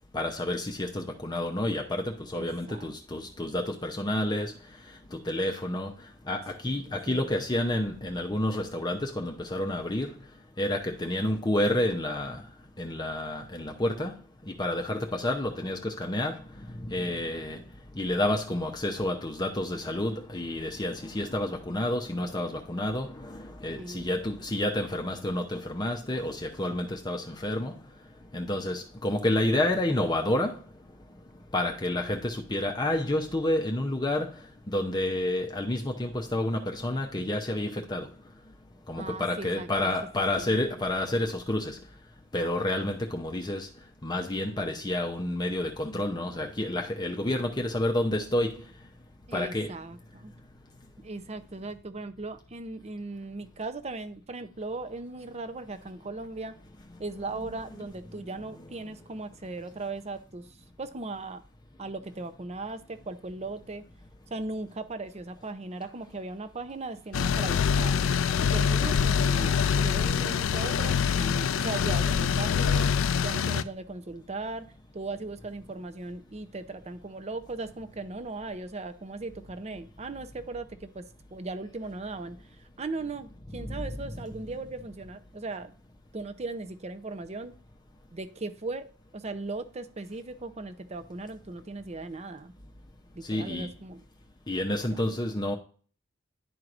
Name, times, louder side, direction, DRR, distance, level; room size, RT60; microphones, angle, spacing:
voice 1, 0.1-4.5 5.1-5.9 6.3-10.1 10.6-12.4 12.8-14.1 14.5-16.3 16.9-17.6 18.0-27.7 28.3-30.6 31.5-34.3 34.7-38.1 38.9-41.8 42.3-43.7 44.0-48.5 49.3-49.7 70.2-70.3 83.6-84.0 93.3-93.7 94.5-95.6, left 1 dB, 20° left, 0.7 m, -29 dB
voice 2, 2.3-2.9 6.8-7.2 23.8-24.2 39.0-39.7 40.4-40.5 49.3-50.3 51.0-56.5 57.0-60.5 60.8-61.4 61.8-63.8 64.3-68.0 68.4-72.9 73.2-81.0 81.3-82.4 82.8-85.7 86.1-87.6 88.1-88.9 89.1-92.5 93.2-94.0, right 3 dB, 30° right, 0.6 m, -38 dB
sound 1, 67.1-73.6, left 7 dB, 70° left, 0.4 m, -25 dB
11.0 x 4.6 x 2.5 m
head